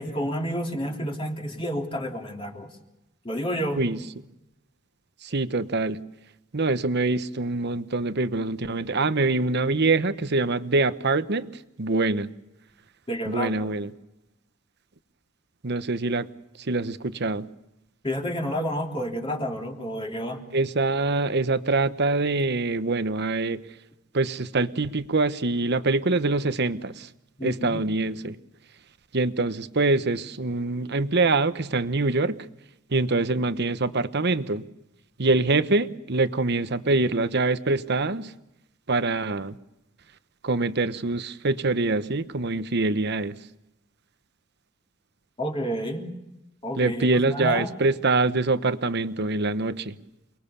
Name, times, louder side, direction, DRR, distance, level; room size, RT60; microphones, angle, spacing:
voice 1, 0.0-2.7 3.2-3.8 13.1-13.5 18.0-20.4 27.4-27.8 45.4-46.1 46.6-47.7, equal, 25° left, 1 dB, 3.2 m, -30 dB
voice 2, 5.2-6.0 6.5-11.5 11.8-12.3 13.3-13.9 15.6-16.3 16.6-17.4 20.5-23.6 24.1-27.1 27.4-28.4 29.1-32.5 32.9-34.6 35.2-38.3 38.9-39.6 40.4-43.4 46.8-50.0, right 3 dB, 55° right, 12 dB, 1.1 m, -24 dB
29.0 x 20.5 x 7.0 m, 0.91 s
head